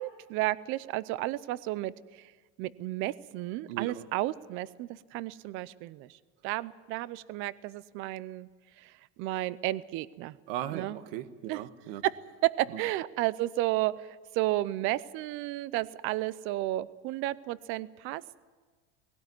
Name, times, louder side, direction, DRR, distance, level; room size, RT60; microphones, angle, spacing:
voice 1, 0.0-2.2 2.6-6.1 6.4-8.5 8.8-8.9 9.2-10.4 10.7-11.0 11.5-11.6 12.0-12.1 12.4-18.2, right 17 dB, 45° right, 19 dB, 0.6 m, -32 dB
voice 2, 3.7-4.0 10.5-12.0 12.7-12.8, right 12 dB, 70° right, 11 dB, 1.5 m, -37 dB
19.5 x 17.0 x 9.5 m, 1.4 s
cardioid pair, 160°, 30 cm